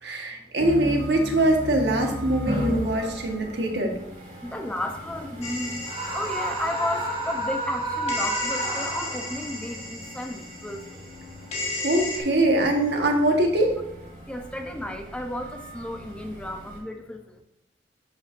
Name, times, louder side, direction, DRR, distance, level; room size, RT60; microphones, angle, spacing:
voice 1, 0.0-3.9 11.8-13.7, right 1 dB, 85° right, 2 dB, 1.4 m, -23 dB
sound 1, 0.6-16.8, equal, 50° right, 2.4 m, -38 dB
voice 2, 4.4-5.9 6.1-11.0 14.3-17.2, left 1 dB, 5° left, 4 dB, 0.6 m, -33 dB
sound 2, 5.4-7.8 8.1-12.2, left 2 dB, 35° left, 1.5 m, -34 dB
Screaming, 5.8-9.5, right 2 dB, 30° right, 1.3 m, -30 dB
11.5 x 5.6 x 2.6 m, 0.80 s
head